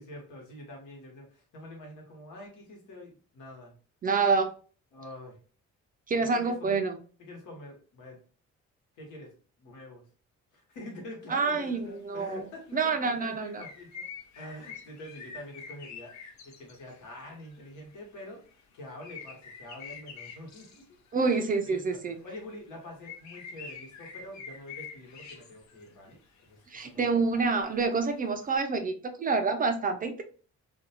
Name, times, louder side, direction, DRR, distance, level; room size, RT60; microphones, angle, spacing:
voice 1, 0.0-3.7 4.9-5.4 6.2-6.8 7.2-8.2 9.0-9.3 9.6-10.1 10.5-14.0 14.4-16.1 16.4-18.4 18.7-20.8 21.2-22.0 22.2-27.5, left 1 dB, 85° left, 0 dB, 1.2 m, -46 dB
voice 2, 4.0-4.5 6.1-7.0 11.3-13.6 21.1-22.2 26.7-30.2, right 4 dB, 30° right, 7 dB, 0.4 m, -27 dB
sound 1, 11.6-11.9 12.7-17.0 17.4-21.8 22.2-22.4 22.7-26.5 26.9-28.6, left 6 dB, 70° left, 0.6 m, -47 dB
2.5 x 2.2 x 2.7 m, 0.40 s
cardioid pair, 105°, 30 cm